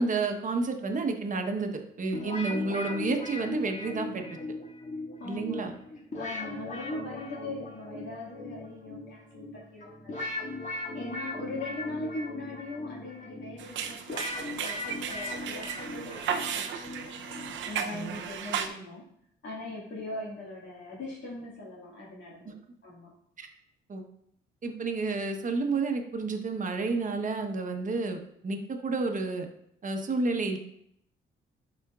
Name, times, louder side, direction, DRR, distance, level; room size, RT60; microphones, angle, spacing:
voice 1, 0.0-4.2 5.2-5.7 17.9-18.2 22.4-22.5 23.4-23.5 23.9-24.1 24.6-29.5 29.8-30.6, right 3 dB, 40° right, 4 dB, 1.1 m, -30 dB
sound 1, 2.1-18.1, left 2 dB, 35° left, 1.8 m, -39 dB
voice 2, 5.2-5.8 6.2-10.5 10.9-17.1 17.7-19.0 19.4-22.5 22.8-23.1, left 2 dB, 65° left, -5 dB, 2.0 m, -40 dB
sound 2, 13.6-18.7, right 7 dB, 75° right, 0.7 m, -35 dB
11.0 x 4.4 x 2.4 m, 0.74 s
cardioid pair, 90°, 20 cm